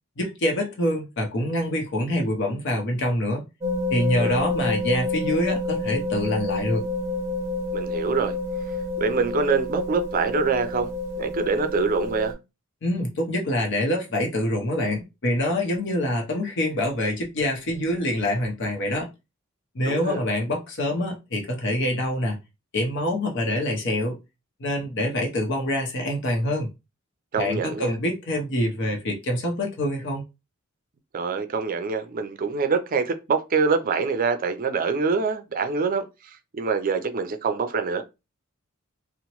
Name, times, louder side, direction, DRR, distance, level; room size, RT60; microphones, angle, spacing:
voice 1, 0.2-3.4 3.9-6.8 12.8-19.1 19.7-22.4 22.7-24.2 24.6-26.7 27.4-30.2, left 1 dB, 60° left, 0.7 m, -25 dB
sound 1, 3.6-12.3, left 3 dB, 15° right, 0.8 m, -28 dB
voice 2, 7.7-8.3 9.0-10.9 11.2-12.3 19.9-20.2 27.3-28.0 31.1-36.0 36.5-38.0, right 5 dB, 45° right, 0.4 m, -25 dB
2.9 x 2.0 x 2.9 m
head